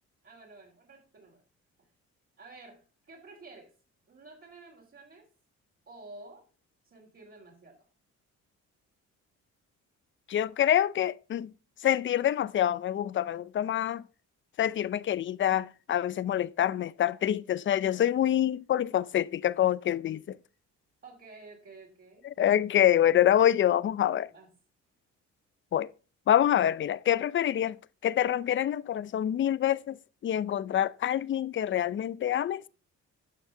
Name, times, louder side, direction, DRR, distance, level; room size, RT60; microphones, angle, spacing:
voice 1, 0.2-1.4 2.4-3.7 4.1-5.3 5.9-6.5 6.8-7.8 21.0-22.3 24.2-24.5, right 3 dB, 45° right, 3.2 m, -51 dB
voice 2, 10.3-11.5 11.8-14.0 14.6-20.4 22.4-24.3 25.7-25.9 26.3-27.8 28.0-30.0 30.2-32.6, left 11 dB, 40° left, 0.5 m, -26 dB
11.5 x 6.2 x 3.7 m
cardioid pair, 90°, 30 cm